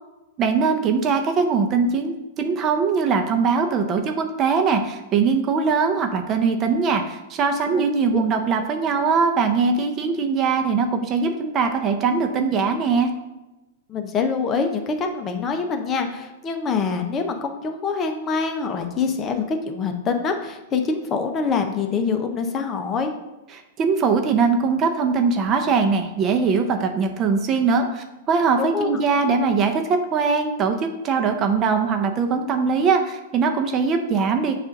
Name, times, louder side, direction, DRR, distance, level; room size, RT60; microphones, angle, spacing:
voice 1, 0.4-13.1 23.8-30.8 31.0-34.6, right 5 dB, 30° right, 5 dB, 0.7 m, -21 dB
voice 2, 13.9-23.1 28.6-29.0, left 5 dB, 25° left, 5 dB, 0.7 m, -25 dB
7.2 x 2.5 x 5.2 m, 1.0 s
hypercardioid pair, 125°, 0 cm